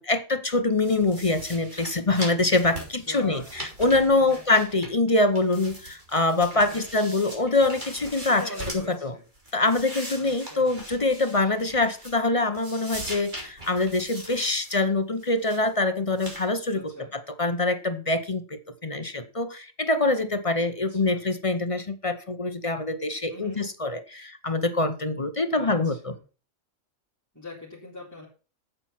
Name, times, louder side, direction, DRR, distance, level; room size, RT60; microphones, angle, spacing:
voice 1, 0.0-8.4 8.9-9.1 9.5-26.1, left 2 dB, 30° left, 10 dB, 0.8 m, -24 dB
sound 1, 0.8-5.1 5.3-8.9 9.3-12.3 12.5-14.8 15.2-15.7 16.2-16.5, right 1 dB, 35° right, 3.7 m, -41 dB
voice 2, 2.6-3.5 4.2-4.4 6.5-6.9 8.3-9.2 10.1-10.8 16.7-17.1 20.9-21.3 23.3-23.6 25.5-26.0 27.3-28.3, left 1 dB, 15° left, -6 dB, 3.6 m, -41 dB
8.9 x 7.9 x 5.9 m, 0.35 s
omnidirectional pair, 1.3 m